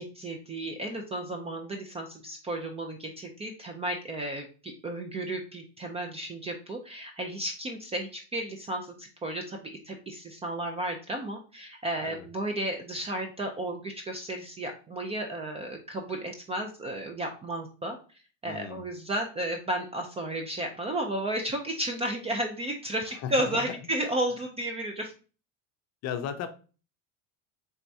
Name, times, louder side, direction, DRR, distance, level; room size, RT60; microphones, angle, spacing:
voice 1, 0.0-9.6 9.9-18.0 18.4-25.1, right 1 dB, 20° right, 3 dB, 0.3 m, -33 dB
voice 2, 18.4-18.8 23.2-23.6 26.0-26.5, left 8 dB, 45° left, 8 dB, 0.6 m, -35 dB
4.4 x 3.4 x 2.6 m, 0.35 s
cardioid pair, 135°, 38 cm